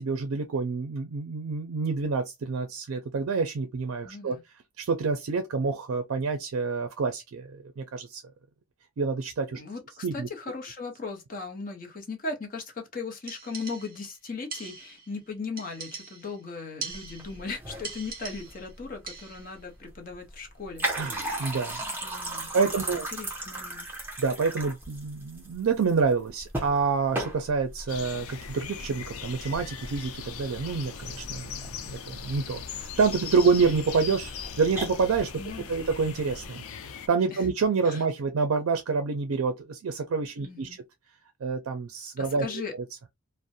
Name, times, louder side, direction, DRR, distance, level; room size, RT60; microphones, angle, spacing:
voice 1, 0.0-4.4 4.8-8.2 9.0-9.6 10.0-10.3 20.9-21.8 22.5-23.1 24.2-35.3 35.7-36.6 37.1-40.8 41.4-42.6, right 4 dB, 75° right, 0.4 m, -27 dB
voice 2, 4.0-4.4 9.5-20.9 21.2-21.5 22.0-23.9 35.4-35.9 37.3-37.5 37.8-38.0 40.4-40.8 42.2-42.7, left 4 dB, 40° left, 0.7 m, -38 dB
sound 1, 13.3-14.1 14.5-15.1 15.6-16.4 16.8-17.5 17.8-18.7 19.1-19.6, right 5 dB, 40° right, 0.8 m, -41 dB
sound 2, 16.9-36.5, right 1 dB, 10° right, 0.6 m, -38 dB
sound 3, 27.9-37.1, left 7 dB, 85° left, 0.4 m, -40 dB
2.5 x 2.0 x 2.6 m
head